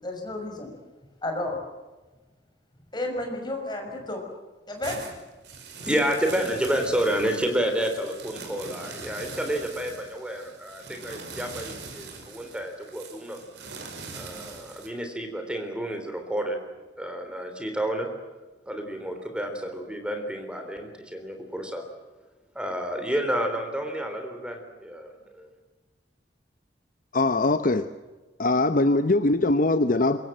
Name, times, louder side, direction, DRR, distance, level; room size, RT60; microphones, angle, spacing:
voice 1, 0.0-0.7 1.2-1.6 2.9-4.2 4.7-5.0, left 1 dB, 25° left, 6.1 m, -31 dB
sound 1, 4.7-14.9, right 4 dB, 75° right, 5.3 m, -42 dB
voice 2, 5.8-13.4 14.1-16.6 17.0-18.1 18.7-21.9 22.6-25.5, right 1 dB, 5° right, 3.7 m, -30 dB
voice 3, 27.1-27.9 28.4-30.2, left 2 dB, 50° left, 0.9 m, -22 dB
26.0 x 22.5 x 7.7 m
head